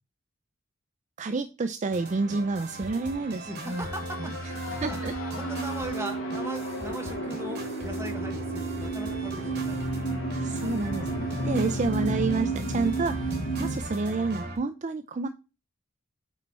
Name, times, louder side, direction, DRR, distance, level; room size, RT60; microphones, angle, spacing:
voice 1, 1.2-3.9 4.8-5.1 10.3-11.1 11.4-13.2 13.6-15.3, right 3 dB, 35° right, 10 dB, 0.4 m, -29 dB
sound 1, 1.9-14.6, right 1 dB, 55° right, 2.9 m, -38 dB
sound 2, 3.5-13.8, right 2 dB, 80° left, 1.0 m, -32 dB
voice 2, 3.5-5.0 5.3-10.0 11.4-11.5, right 1 dB, 15° right, 3 dB, 1.4 m, -39 dB
9.0 x 4.0 x 4.2 m, 0.30 s
head